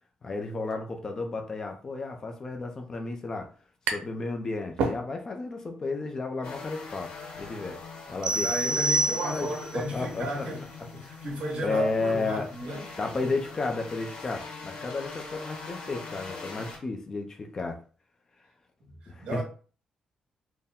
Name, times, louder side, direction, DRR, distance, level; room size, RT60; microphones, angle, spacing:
voice 1, 0.2-3.5 3.9-7.1 7.4-7.8 8.1-8.8 9.2-10.5 11.0-11.2 11.6-12.5 13.0-17.8 19.1-19.4, left 3 dB, 25° left, 0.5 m, -32 dB
sound 1, 3.0-4.3 4.6-5.5, right 4 dB, 90° right, 0.6 m, -32 dB
sound 2, 6.4-16.8, left 4 dB, 70° left, 1.4 m, -43 dB
sound 3, 8.2-9.8, right 2 dB, 35° right, 0.3 m, -27 dB
voice 2, 8.3-10.6 10.9-12.8 13.2-13.3 18.8-18.9 19.2-19.4, right 1 dB, 55° right, 1.7 m, -34 dB
4.4 x 2.1 x 3.5 m
cardioid pair, 175°, 2 cm